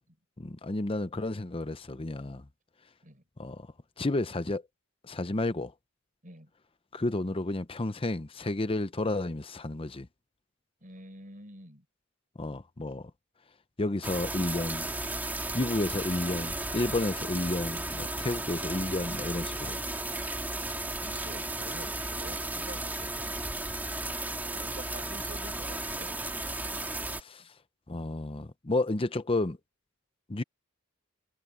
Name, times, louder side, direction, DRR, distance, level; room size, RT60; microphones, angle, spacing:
voice 1, 0.4-2.4 3.4-3.7 4.0-4.6 5.0-5.7 6.9-10.1 12.4-13.0 13.8-14.9 15.5-19.8 27.2-27.4 27.9-29.6 30.3-30.4, left 2 dB, 25° left, 0.7 m, -31 dB
voice 2, 10.8-11.8 21.0-23.4 24.4-26.3 27.4-27.5, right 1 dB, 40° right, 6.2 m, -48 dB
sound 1, 14.0-27.2, right 2 dB, 10° right, 2.5 m, -34 dB
head